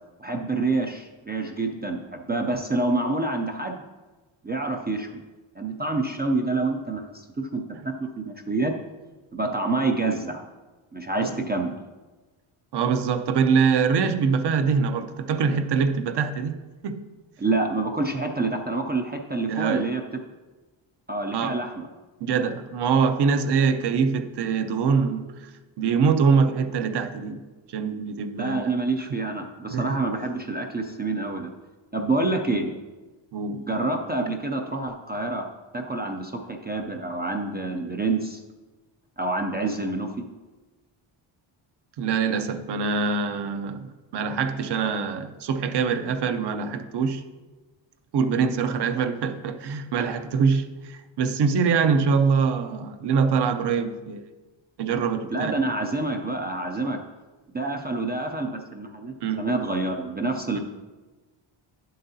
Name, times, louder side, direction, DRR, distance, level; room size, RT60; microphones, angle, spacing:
voice 1, 0.2-3.8 4.4-5.1 5.6-7.6 8.0-8.7 9.3-10.4 10.9-11.7 17.4-20.0 21.1-21.9 28.3-31.5 31.9-32.7 33.7-35.5 35.7-38.4 39.2-40.3 55.3-57.0 57.5-60.6, right 2 dB, 25° right, 0.3 m, -27 dB
voice 2, 12.7-16.5 16.8-17.1 19.5-19.9 21.3-21.6 22.2-25.5 25.8-27.4 27.7-28.7 29.7-30.0 33.3-33.7 42.0-47.2 48.1-54.2 54.8-55.6 56.8-57.0 59.2-59.5, right 5 dB, 55° right, 0.6 m, -24 dB
10.5 x 7.7 x 2.7 m
wide cardioid pair, 160°, 50 cm